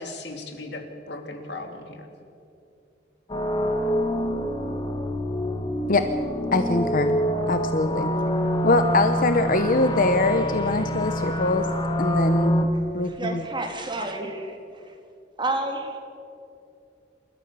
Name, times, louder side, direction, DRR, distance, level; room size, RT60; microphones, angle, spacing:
voice 1, 0.0-2.1, left 2 dB, 70° left, 4 dB, 2.8 m, -37 dB
sound 1, 3.3-12.6, equal, 25° left, 2.0 m, -26 dB
voice 2, 6.5-7.2 7.5-8.1 8.6-11.7 12.0-12.7 12.9-13.4, left 2 dB, 50° left, 8 dB, 0.9 m, -23 dB
voice 3, 13.0-14.9 15.4-16.0, right 2 dB, 25° right, 2 dB, 2.8 m, -30 dB
28.5 x 13.5 x 7.0 m, 2.6 s
head